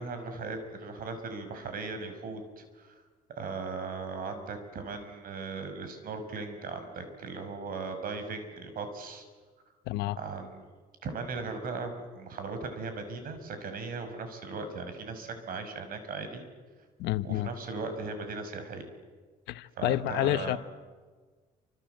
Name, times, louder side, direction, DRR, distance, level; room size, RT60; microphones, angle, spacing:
voice 1, 0.0-2.9 3.3-9.3 10.2-10.6 11.0-16.4 17.2-18.9 19.8-20.6, right 4 dB, 60° right, 8 dB, 5.7 m, -38 dB
voice 2, 9.9-10.2 17.0-17.5 19.5-20.6, left 15 dB, 85° left, 13 dB, 1.2 m, -29 dB
28.5 x 26.0 x 8.0 m, 1.4 s
cardioid pair, 110°, 17 cm